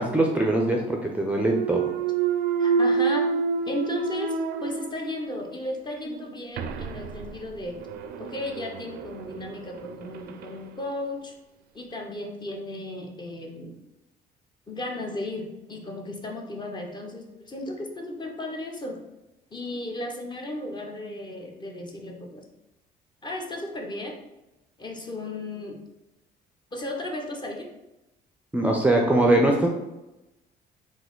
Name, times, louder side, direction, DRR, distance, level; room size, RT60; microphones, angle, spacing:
voice 1, 0.0-1.9 28.5-29.7, right 1 dB, 10° right, 0 dB, 0.5 m, -22 dB
Thump thud, 1.4-5.4 5.9-10.6, right 5 dB, 65° right, 0.4 m, -28 dB
voice 2, 2.6-3.3 3.7-7.8 8.2-11.3 11.7-13.8 14.7-19.0 19.5-22.4 23.2-24.2 24.8-25.8 26.7-27.7, left 1 dB, 25° left, 1 dB, 0.8 m, -35 dB
4.0 x 2.6 x 3.8 m, 0.95 s
cardioid pair, 110°, 17 cm